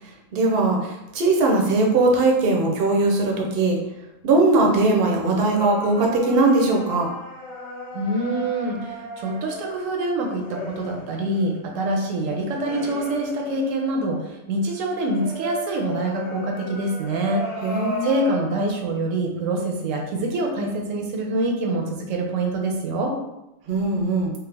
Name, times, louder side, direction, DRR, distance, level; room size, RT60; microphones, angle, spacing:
voice 1, 0.3-3.8 4.2-7.1 17.6-18.1 23.7-24.3, right 2 dB, 55° right, 0 dB, 0.7 m, -20 dB
sound 1, 5.4-14.3 14.7-18.7, left 1 dB, 75° left, 1.3 m, -36 dB
voice 2, 7.9-17.5 18.0-23.2, right 2 dB, 75° right, 1 dB, 1.0 m, -25 dB
3.4 x 2.1 x 3.3 m, 0.91 s
omnidirectional pair, 1.4 m